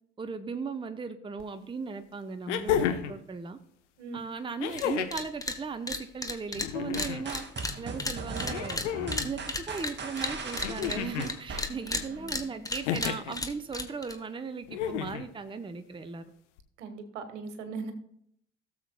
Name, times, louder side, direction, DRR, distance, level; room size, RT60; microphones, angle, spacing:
voice 1, 0.2-3.6 4.1-7.4 7.8-16.3, right 5 dB, 15° right, 10 dB, 0.8 m, -37 dB
sound 1, 1.4-1.5 2.5-3.2 4.6-5.3 6.5-7.3 8.5-9.3 10.6-11.3 12.8-13.4 14.7-15.3 16.6-16.7, left 9 dB, 70° left, 0.9 m, -31 dB
sound 2, 4.7-4.9 5.1-5.6 5.9-11.3 11.6-14.2, left 2 dB, 10° left, 1.2 m, -34 dB
sound 3, 7.0-12.2, right 4 dB, 30° right, 2.0 m, -39 dB
voice 2, 11.7-12.6 16.8-17.9, right 4 dB, 75° right, 7 dB, 1.5 m, -40 dB
17.5 x 7.2 x 2.2 m, 0.69 s
figure-of-eight pair, 60°, 37 cm